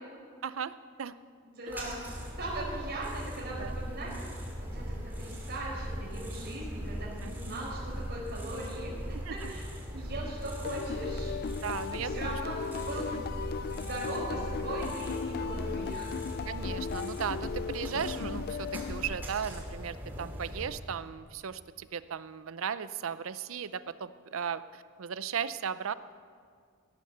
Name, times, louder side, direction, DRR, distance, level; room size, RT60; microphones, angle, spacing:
voice 1, 0.4-0.7 1.0-1.1 3.6-3.7 7.2-7.3 9.3-9.5 11.6-12.3 13.1-13.2 16.4-25.9, right 7 dB, 85° right, 15 dB, 0.5 m, -36 dB
voice 2, 1.4-2.0 2.4-4.1 4.7-9.6 9.9-11.3 11.6-11.7 12.0-13.1 13.7-16.1, right 2 dB, 55° right, -5 dB, 4.7 m, -39 dB
sound 1, 1.7-20.7, equal, 10° right, 2.8 m, -39 dB
sound 2, 10.6-19.6, left 6 dB, 50° left, 0.3 m, -37 dB
17.0 x 9.3 x 6.7 m, 2.1 s
head